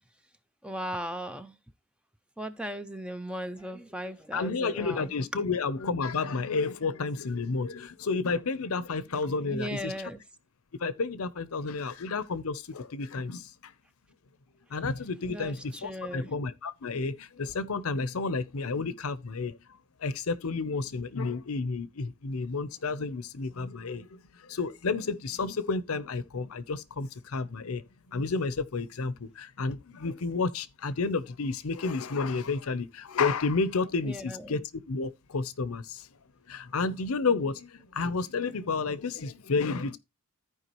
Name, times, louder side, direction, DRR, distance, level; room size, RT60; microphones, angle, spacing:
voice 1, 0.6-1.6 2.4-5.1 9.2-10.2 15.3-16.3 34.0-34.6, equal, 5° right, 0.5 m, -37 dB
voice 2, 4.3-9.9 10.8-13.7 14.7-19.6 20.0-36.1 36.5-40.0, left 4 dB, 70° left, 0.7 m, -31 dB
14.5 x 4.8 x 3.0 m
head